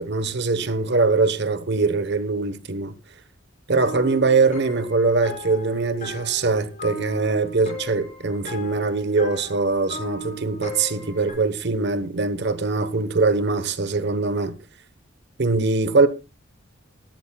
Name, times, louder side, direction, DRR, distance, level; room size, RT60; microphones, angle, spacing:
voice 1, 0.0-2.9 3.7-14.5 15.4-16.1, right 3 dB, 55° right, 1.1 m, -22 dB
sound 1, 3.8-11.3, left 1 dB, 40° left, 7.0 m, -37 dB
18.0 x 13.0 x 2.3 m
head